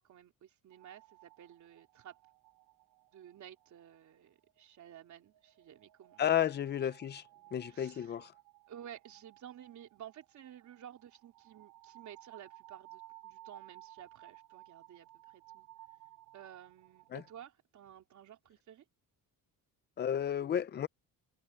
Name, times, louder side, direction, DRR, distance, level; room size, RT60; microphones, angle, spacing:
voice 1, 0.0-2.2 3.1-6.2 6.5-6.9 7.7-8.2 8.7-15.7 16.3-18.9, right 10 dB, 50° right, 3.5 m, -53 dB
sound 1, 0.7-17.5, right 17 dB, 85° right, 3.1 m, -58 dB
voice 2, 6.2-7.2 7.5-8.3 17.1-17.2 20.0-20.9, left 10 dB, 30° left, 0.5 m, -32 dB
cardioid pair, 170°, 37 cm